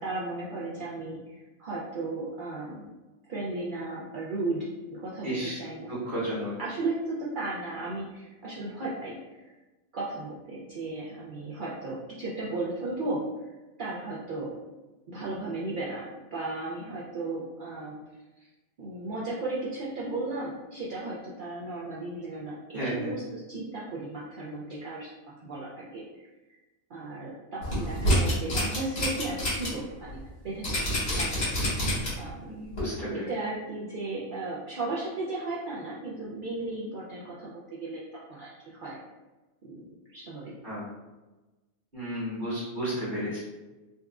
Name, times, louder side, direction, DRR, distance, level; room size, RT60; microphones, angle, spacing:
voice 1, 0.0-2.9 3.3-5.9 6.6-9.5 9.9-13.5 13.8-14.5 15.1-18.0 18.4-18.5 18.8-25.1 25.4-26.3 26.9-30.8 31.1-31.3 32.2-32.7 33.1-39.0 39.6-39.8 40.1-40.5, right 2 dB, 75° right, -6 dB, 0.4 m, -35 dB
voice 2, 5.2-5.6 5.9-6.5 22.7-23.1 32.5-33.2 40.6-40.9 41.9-43.4, equal, 35° right, -9 dB, 1.1 m, -32 dB
sound 1, 27.6-29.7 30.1-30.2 30.6-32.3 32.7-32.8, equal, 85° left, 2.0 m, -27 dB
3.9 x 2.3 x 2.3 m, 1.1 s
omnidirectional pair, 1.4 m